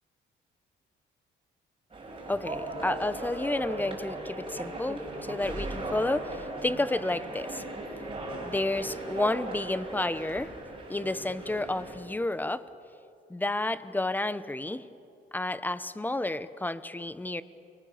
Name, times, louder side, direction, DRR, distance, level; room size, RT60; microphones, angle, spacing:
sound 1, 1.9-12.0, right 2 dB, 25° right, 7.2 m, -38 dB
voice 1, 2.3-7.6 8.4-10.5 10.9-12.7 13.3-14.9 15.3-17.4, left 2 dB, 10° left, 14 dB, 1.0 m, -31 dB
29.0 x 23.5 x 7.2 m, 2.7 s
cardioid pair, 90°, 20 cm